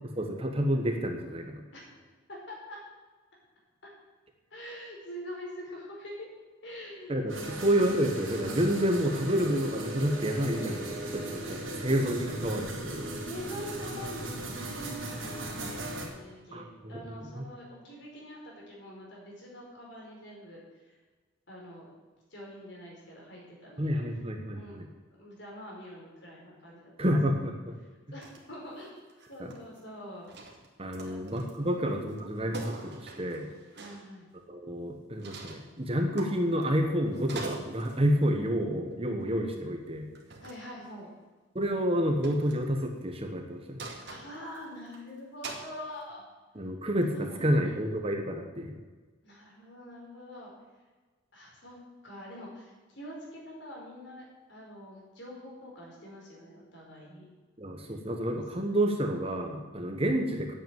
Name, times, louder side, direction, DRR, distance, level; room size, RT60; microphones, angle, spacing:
voice 1, 0.2-1.6 7.1-13.1 16.5-17.0 17.4-17.5 23.8-24.9 27.0-27.8 30.8-33.5 34.5-40.1 41.5-43.8 46.5-48.7 57.6-60.5, equal, 30° right, 3 dB, 1.3 m, -29 dB
voice 2, 1.7-2.8 3.8-3.9 4.5-6.3 6.6-8.0 13.2-21.0 21.5-21.8 22.3-24.0 24.5-24.8 25.2-26.9 27.8-30.3 31.0-31.2 31.6-32.1 33.8-34.3 40.4-41.1 44.1-46.2 47.1-47.8 49.2-50.5 51.3-57.2 58.6-59.1, equal, 60° left, -3 dB, 4.9 m, -45 dB
sound 1, 7.3-16.1, right 1 dB, 80° right, 3.1 m, -37 dB
sound 2, 28.2-28.4 28.7-29.9 30.2-31.7 32.1-32.2 32.5-34.1 35.2-35.7 36.2-36.8 37.1-38.0 39.2-39.4 40.1-40.6 42.2-42.6 43.8-45.0 45.4-45.7, right 3 dB, 55° right, 2.2 m, -43 dB
9.4 x 8.3 x 9.1 m, 1.3 s
head